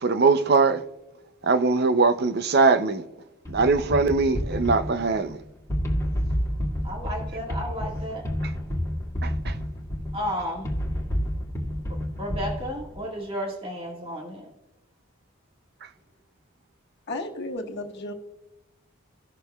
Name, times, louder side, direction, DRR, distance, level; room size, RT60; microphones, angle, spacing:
voice 1, 0.0-0.8 1.4-3.0 3.5-5.4 9.2-9.5, right 4 dB, 50° right, 0.6 m, -21 dB
sound 1, 3.5-13.0, equal, 15° left, 1.7 m, -30 dB
voice 2, 6.8-8.2 10.1-10.7 12.2-14.5, equal, 25° right, 1.8 m, -32 dB
voice 3, 17.1-18.1, left 2 dB, 55° left, 1.4 m, -33 dB
17.0 x 6.4 x 2.3 m
head